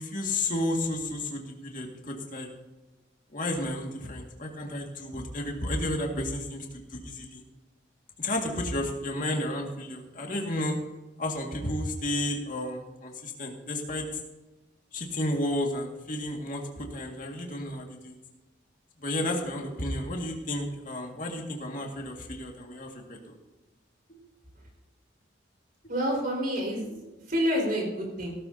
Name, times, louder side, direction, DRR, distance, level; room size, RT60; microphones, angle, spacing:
voice 1, 0.0-2.5 3.3-6.7 6.9-7.4 8.2-10.7 11.2-14.1 14.9-18.2 19.0-23.2, left 1 dB, 45° left, 1 dB, 2.1 m, -32 dB
voice 2, 25.9-26.9 27.3-28.4, equal, 50° right, -1 dB, 5.0 m, -28 dB
17.5 x 13.0 x 2.9 m, 1.1 s
head